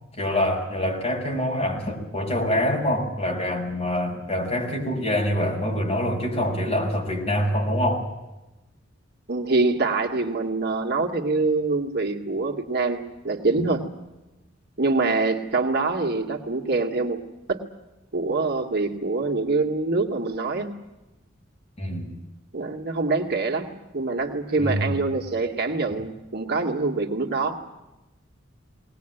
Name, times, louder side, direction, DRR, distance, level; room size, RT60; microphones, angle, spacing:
voice 1, 0.2-8.1 21.8-22.1 24.6-25.1, left 1 dB, 30° left, 0 dB, 5.9 m, -25 dB
voice 2, 9.3-13.9 14.8-17.2 17.5-17.7 18.1-20.7 22.5-27.6, right 3 dB, 50° right, 2 dB, 2.2 m, -25 dB
21.5 x 19.5 x 9.2 m, 1.0 s
head